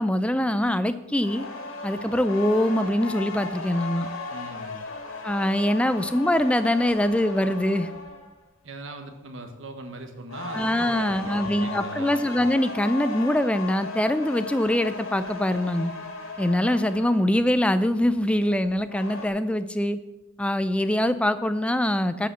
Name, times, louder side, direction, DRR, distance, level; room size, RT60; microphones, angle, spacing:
voice 1, 0.0-1.5 1.8-4.1 5.2-7.9 10.5-15.9 16.4-20.0 20.4-22.3, left 1 dB, 5° left, 12 dB, 0.4 m, -23 dB
sound 1, 1.2-8.4 10.3-17.4 18.7-19.3, left 3 dB, 90° left, 2.0 m, -36 dB
voice 2, 4.3-4.9 8.6-12.2, right 2 dB, 65° right, 6 dB, 1.2 m, -40 dB
12.0 x 5.0 x 6.9 m, 1.1 s
head